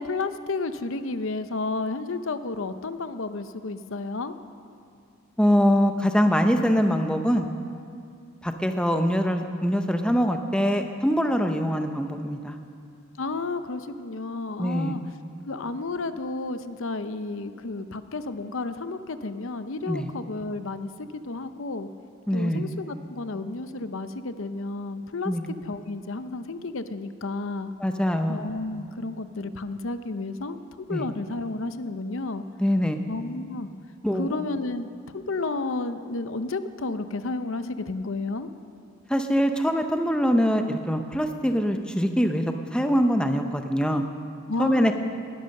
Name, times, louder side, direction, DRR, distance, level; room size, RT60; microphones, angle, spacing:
voice 1, 0.0-4.3 13.2-15.0 15.4-21.9 22.3-27.7 28.3-30.6 30.9-32.4 33.1-33.7 34.1-34.9 35.1-38.5 44.5-44.9, left 3 dB, 70° left, 10 dB, 0.7 m, -32 dB
voice 2, 5.4-7.5 8.4-12.6 14.6-15.0 19.9-20.1 22.3-22.7 25.3-25.5 27.8-28.4 30.9-31.1 32.6-33.0 34.0-34.3 39.1-44.0 44.6-44.9, equal, 5° left, 5 dB, 0.6 m, -23 dB
19.5 x 11.0 x 6.5 m, 2.4 s
head